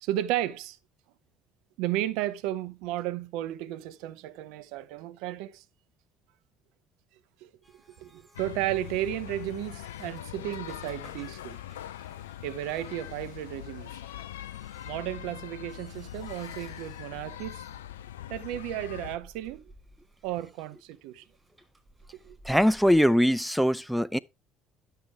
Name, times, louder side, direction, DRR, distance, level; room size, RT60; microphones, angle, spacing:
voice 1, 0.0-0.8 1.8-5.6 7.4-7.5 8.0-11.6 12.4-14.0 14.8-17.6 18.3-19.7 20.2-21.2 22.2-22.4, right 13 dB, 75° right, 0.7 m, -33 dB
sound 1, 7.6-23.2, right 2 dB, 15° right, 5.0 m, -57 dB
sound 2, 8.3-19.2, left 12 dB, 85° left, 0.4 m, -42 dB
voice 2, 22.4-24.2, equal, ahead, 0.6 m, -22 dB
11.5 x 6.7 x 3.5 m
hypercardioid pair, 60°, 0 cm